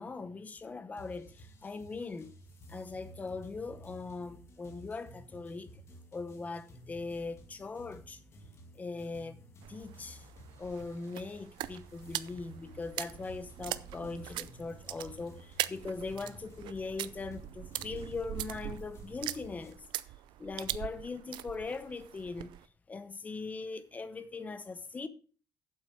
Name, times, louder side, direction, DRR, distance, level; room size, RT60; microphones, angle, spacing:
voice 1, 0.0-2.3 2.7-5.7 6.1-8.2 8.8-9.4 9.7-10.2 10.6-19.8 20.4-22.5 22.9-25.1, left 4 dB, 20° left, 0.9 m, -40 dB
sound 1, 1.0-19.7, equal, 35° left, 2.2 m, -54 dB
sound 2, 9.6-22.7, right 14 dB, 75° right, 0.5 m, -42 dB
8.2 x 7.7 x 6.3 m
cardioid pair, 165°, 8 cm